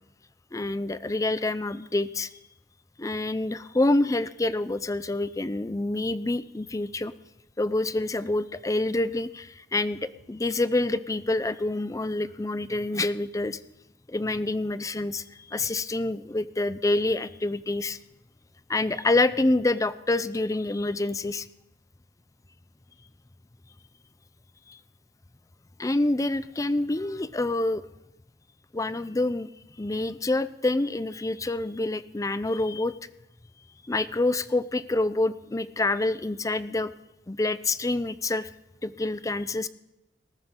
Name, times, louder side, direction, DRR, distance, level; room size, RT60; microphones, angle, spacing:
voice 1, 0.5-2.3 3.0-7.1 7.6-13.6 14.1-18.0 18.7-21.5 24.7-24.8 25.8-27.8 28.7-29.5 29.8-33.0 33.9-36.9 37.3-38.5 38.8-39.7, left 2 dB, 20° left, 15 dB, 0.5 m, -27 dB
19.5 x 14.0 x 3.7 m, 0.92 s
head